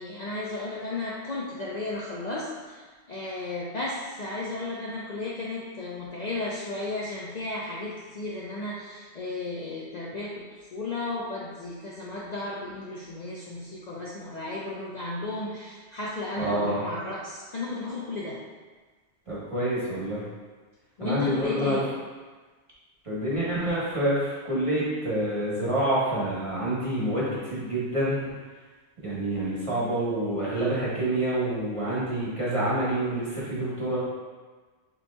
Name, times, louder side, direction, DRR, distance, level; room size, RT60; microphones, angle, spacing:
voice 1, 0.0-18.4 21.0-21.9, left 2 dB, 50° left, -6 dB, 0.6 m, -34 dB
voice 2, 16.4-16.8 19.3-20.2 21.0-21.8 23.0-28.3 29.0-34.0, right 1 dB, 30° right, -8 dB, 1.1 m, -27 dB
6.8 x 2.8 x 2.3 m, 1.4 s
omnidirectional pair, 1.1 m